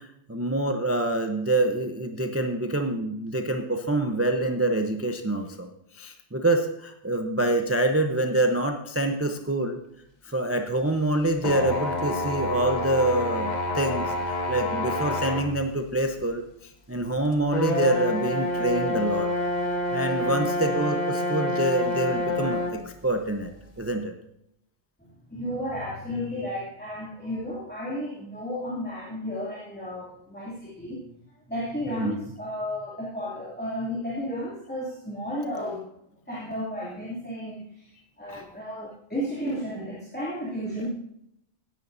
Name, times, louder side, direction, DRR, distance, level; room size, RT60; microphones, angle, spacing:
voice 1, 0.0-5.7 5.9-9.8 10.2-19.3 19.9-23.5 23.8-24.1 31.9-32.3 38.3-38.5, right 1 dB, 15° right, 4 dB, 0.7 m, -26 dB
sound 1, 11.4-15.5 16.2-16.3 17.5-22.8, left 1 dB, 40° left, 1.2 m, -28 dB
voice 2, 25.0-31.0 31.5-35.8 36.3-37.9 38.2-40.9, equal, 10° left, -8 dB, 2.7 m, -33 dB
17.0 x 10.5 x 2.7 m, 0.79 s
omnidirectional pair, 1.2 m